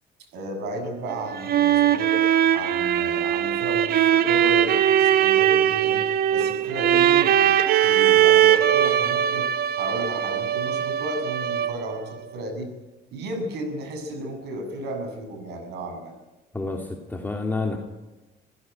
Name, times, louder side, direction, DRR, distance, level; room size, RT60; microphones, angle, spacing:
voice 1, 0.2-2.2 2.5-7.6 7.8-9.5 9.8-12.7 13.1-16.1, right 1 dB, 80° right, 7 dB, 7.3 m, -33 dB
sound 1, 1.1-12.0, right 10 dB, 65° right, 1.2 m, -20 dB
voice 2, 16.5-17.8, left 3 dB, 10° left, 1 dB, 2.9 m, -29 dB
27.0 x 16.0 x 9.3 m, 1.1 s
cardioid pair, 110°, 17 cm